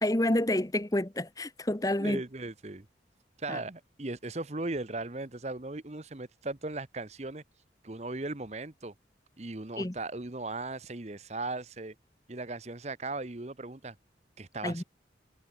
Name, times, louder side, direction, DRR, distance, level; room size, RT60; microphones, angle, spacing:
voice 1, 0.0-2.2 3.5-3.6 9.8-9.9 14.6-14.8, left 1 dB, 20° left, 0.9 m, -28 dB
voice 2, 2.0-2.9 3.4-7.4 7.8-8.9 9.4-11.9 12.3-13.9 14.4-14.8, right 2 dB, 35° right, 1.0 m, -37 dB
head